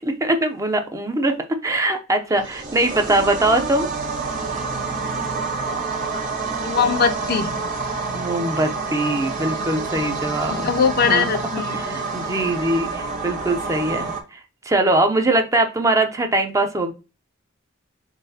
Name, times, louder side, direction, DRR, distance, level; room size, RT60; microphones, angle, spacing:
voice 1, 0.0-3.9 8.1-10.7 11.0-11.3 11.7-14.4 14.7-16.9, right 2 dB, 15° right, 6 dB, 0.5 m, -22 dB
sound 1, 2.3-14.2, right 4 dB, 40° right, 0.8 m, -28 dB
voice 2, 6.6-7.5 10.5-11.8, left 6 dB, 50° left, 9 dB, 0.4 m, -21 dB
3.8 x 3.4 x 2.7 m, 0.30 s
head